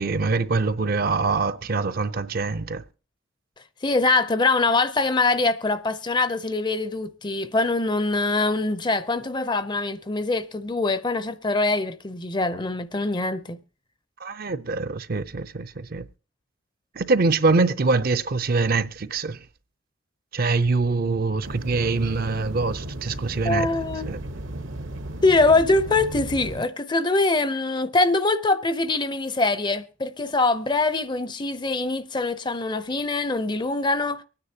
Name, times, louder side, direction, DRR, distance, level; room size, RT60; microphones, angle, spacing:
voice 1, 0.0-2.8 14.2-16.0 17.0-19.4 20.3-23.7 24.0-24.2, right 3 dB, 45° right, 0.6 m, -24 dB
voice 2, 3.8-13.6 23.4-24.1 25.2-34.2, left 3 dB, 20° left, 0.6 m, -23 dB
sound 1, 21.4-26.6, right 1 dB, 70° right, 1.0 m, -35 dB
23.5 x 9.7 x 2.8 m
head